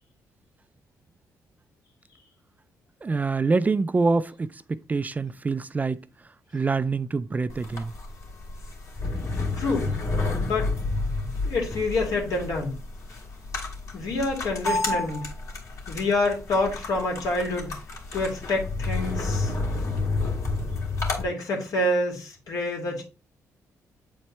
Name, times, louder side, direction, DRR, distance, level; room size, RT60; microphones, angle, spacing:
voice 1, 3.0-6.0 6.5-7.9, right 4 dB, 25° right, 0.4 m, -25 dB
sound 1, 7.5-21.2, left 3 dB, 55° left, 2.6 m, -30 dB
voice 2, 9.5-9.9 10.4-10.7 11.4-12.7 13.9-15.3 15.9-17.7 18.1-19.5 21.2-23.0, left 2 dB, 70° left, 2.9 m, -27 dB
8.0 x 4.3 x 3.3 m
cardioid pair, 85°, 6 cm